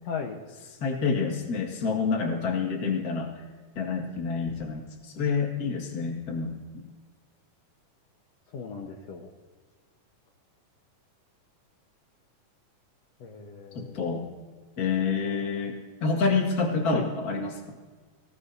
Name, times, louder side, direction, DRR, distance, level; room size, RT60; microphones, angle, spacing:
voice 1, 0.1-0.4 8.5-9.3 13.2-14.0 16.9-17.1, left 6 dB, 65° left, 0 dB, 2.0 m, -36 dB
voice 2, 0.8-3.3 3.8-6.8 13.7-14.3 14.8-17.8, left 4 dB, 35° left, 1 dB, 1.9 m, -28 dB
24.5 x 17.0 x 2.8 m, 1.4 s
omnidirectional pair, 3.7 m